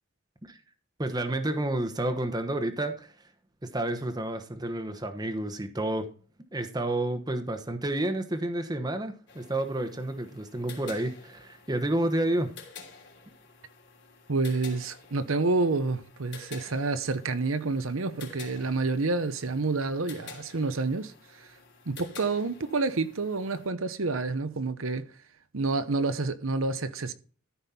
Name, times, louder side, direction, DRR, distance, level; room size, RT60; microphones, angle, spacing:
voice 1, 1.0-3.1 3.6-6.1 6.5-12.5, right 1 dB, 20° right, 1.0 m, -30 dB
sound 1, 9.3-23.7, left 5 dB, 60° left, 3.1 m, -50 dB
voice 2, 14.3-21.5 21.9-25.1 25.5-27.1, right 3 dB, 90° right, 0.9 m, -29 dB
13.5 x 5.5 x 4.3 m
head